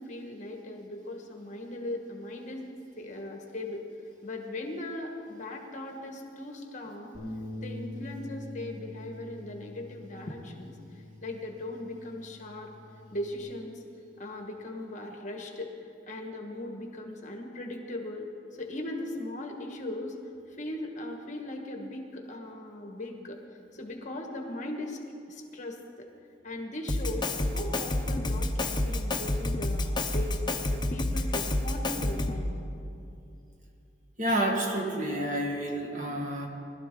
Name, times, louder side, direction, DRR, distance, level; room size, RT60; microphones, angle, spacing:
voice 1, 0.0-3.8 4.2-7.2 7.6-12.7 13.1-13.8 14.2-15.7 16.1-20.2 20.5-25.0 25.3-26.1 26.4-30.4 30.7-32.5, left 1 dB, 45° left, 2 dB, 1.5 m, -39 dB
Bass guitar, 7.1-13.4, left 1 dB, 70° right, 3.1 m, -44 dB
Drum kit, 26.9-32.5, left 2 dB, 25° left, 0.8 m, -29 dB
voice 2, 34.2-36.5, right 1 dB, 45° right, 0 dB, 1.9 m, -29 dB
20.5 x 12.5 x 3.9 m, 2.6 s
head